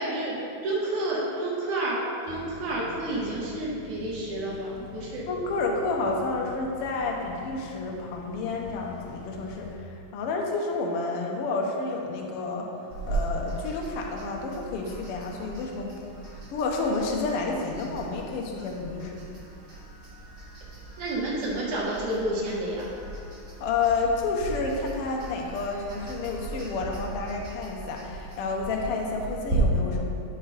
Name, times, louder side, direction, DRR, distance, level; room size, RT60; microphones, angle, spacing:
voice 1, 0.0-0.4 0.6-5.2 21.0-22.9, right 1 dB, 75° right, -5 dB, 3.0 m, -30 dB
sound 1, 2.3-9.8, left 5 dB, 85° left, 2.1 m, -46 dB
voice 2, 5.3-12.7 13.1-19.2 23.6-30.1, left 3 dB, 65° left, 0 dB, 1.5 m, -30 dB
sound 2, 12.9-29.6, right 2 dB, 30° right, 1.0 m, -39 dB
12.0 x 5.0 x 4.0 m, 2.5 s
omnidirectional pair, 3.5 m